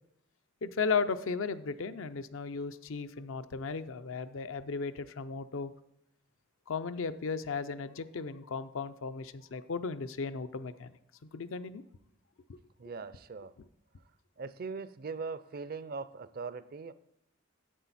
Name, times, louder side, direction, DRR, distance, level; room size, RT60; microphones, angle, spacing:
voice 1, 0.6-5.7 6.7-10.9 11.3-11.8 12.5-12.6, left 5 dB, 70° left, 11 dB, 0.5 m, -35 dB
voice 2, 12.8-13.5 14.4-16.9, right 4 dB, 45° right, 15 dB, 0.4 m, -40 dB
10.0 x 7.8 x 4.1 m, 0.79 s
head